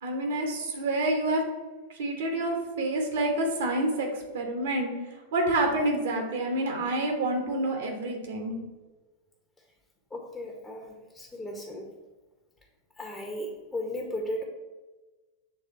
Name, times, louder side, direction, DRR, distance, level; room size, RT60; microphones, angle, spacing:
voice 1, 0.0-1.4 2.0-4.9 5.3-8.5, right 1 dB, 60° right, 2 dB, 1.3 m, -28 dB
voice 2, 10.1-11.9 13.0-14.4, left 1 dB, 15° left, 0 dB, 0.9 m, -36 dB
7.2 x 3.4 x 4.2 m, 1.2 s
figure-of-eight pair, 90°, 0 cm